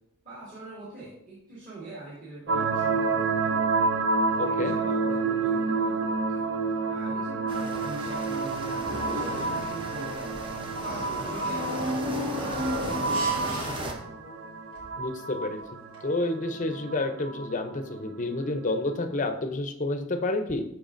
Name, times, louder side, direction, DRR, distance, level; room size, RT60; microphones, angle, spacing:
voice 1, 0.2-3.7 4.2-10.4 10.8-13.5, right 2 dB, 40° right, -8 dB, 2.2 m, -43 dB
sound 1, 2.5-19.1, right 4 dB, 60° right, 0.6 m, -30 dB
voice 2, 4.4-4.7 15.0-15.6 16.0-20.6, left 2 dB, 35° left, 7 dB, 0.6 m, -29 dB
sound 2, 7.5-13.9, right 1 dB, 25° right, 0.7 m, -38 dB
sound 3, 8.8-9.7 10.8-14.4 14.8-14.9 15.9-16.0, right 1 dB, 85° right, 2.8 m, -31 dB
12.0 x 4.7 x 2.6 m, 0.80 s
head